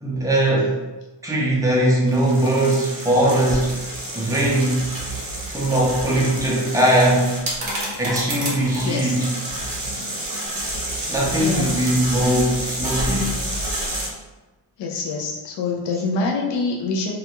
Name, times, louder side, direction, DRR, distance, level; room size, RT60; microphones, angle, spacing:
voice 1, 0.0-0.8 1.2-3.8 4.1-4.8 5.5-7.3 8.0-9.3 11.0-13.4, right 1 dB, 10° right, -4 dB, 0.3 m, -20 dB
sound 1, 2.1-14.1, right 1 dB, 45° right, 0.8 m, -29 dB
voice 2, 8.8-9.1 11.4-11.8 14.8-17.1, left 3 dB, 60° left, -1 dB, 0.5 m, -25 dB
2.4 x 2.2 x 2.9 m, 1.1 s
wide cardioid pair, 170°, 49 cm